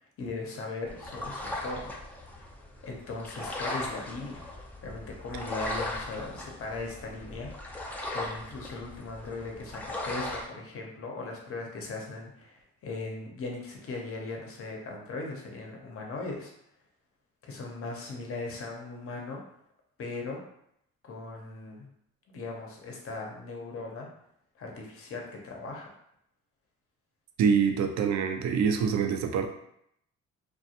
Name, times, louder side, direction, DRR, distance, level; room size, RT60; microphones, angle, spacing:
voice 1, 0.2-1.9 2.8-4.5 4.8-16.5 17.4-19.4 20.0-20.4 21.0-21.9 22.3-24.1 24.6-25.9, left 3 dB, 50° left, 1 dB, 0.7 m, -38 dB
sound 1, 0.9-10.5, left 1 dB, 5° left, 0.4 m, -38 dB
voice 2, 27.4-29.5, right 6 dB, 65° right, 6 dB, 0.4 m, -25 dB
2.4 x 2.2 x 2.8 m, 0.73 s
cardioid pair, 90°, 30 cm